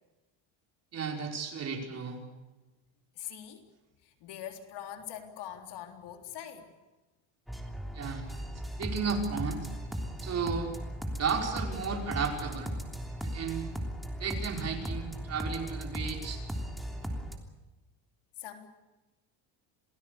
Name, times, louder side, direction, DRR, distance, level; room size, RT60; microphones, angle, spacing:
voice 1, 0.9-2.2 7.9-8.2 8.8-9.7 10.2-10.7 11.1-12.7 13.2-13.7 14.2-16.4, right 5 dB, 35° right, 3 dB, 5.3 m, -33 dB
voice 2, 3.2-3.7 4.0-6.7 18.4-18.7, left 10 dB, 60° left, 6 dB, 3.7 m, -43 dB
sound 1, 7.5-17.4, equal, ahead, 3.2 m, -37 dB
28.5 x 19.5 x 6.8 m, 1.1 s
cardioid pair, 150°, 46 cm